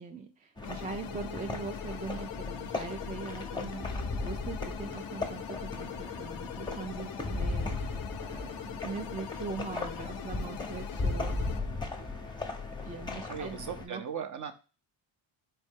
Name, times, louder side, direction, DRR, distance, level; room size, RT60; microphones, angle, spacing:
voice 1, 0.0-11.8 12.2-12.3 12.9-14.0, right 5 dB, 20° right, 5 dB, 0.4 m, -42 dB
sound 1, 0.6-11.6, left 10 dB, 45° left, 0.4 m, -43 dB
sound 2, 0.6-13.9, left 3 dB, 10° left, 0.8 m, -37 dB
voice 2, 13.3-14.5, right 7 dB, 40° right, 9 dB, 0.8 m, -37 dB
4.3 x 2.6 x 3.6 m, 0.33 s
cardioid pair, 85°, 50 cm